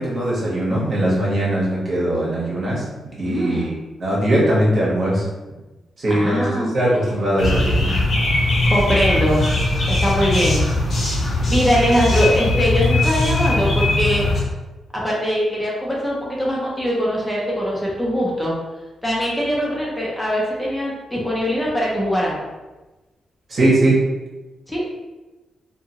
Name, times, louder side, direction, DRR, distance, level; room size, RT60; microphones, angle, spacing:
voice 1, 0.0-2.8 3.2-3.7 4.0-5.2 6.0-7.9 23.5-24.0, right 1 dB, 45° right, -5 dB, 1.0 m, -20 dB
voice 2, 3.2-3.7 6.1-6.7 8.7-9.4 9.9-10.6 11.1-14.2 15.0-18.5 19.0-22.5 24.7-24.8, equal, 10° left, -4 dB, 0.5 m, -22 dB
sound 1, 7.4-14.4, left 2 dB, 50° left, 0.8 m, -20 dB
2.6 x 2.5 x 2.8 m, 1.1 s
cardioid pair, 115°, 0 cm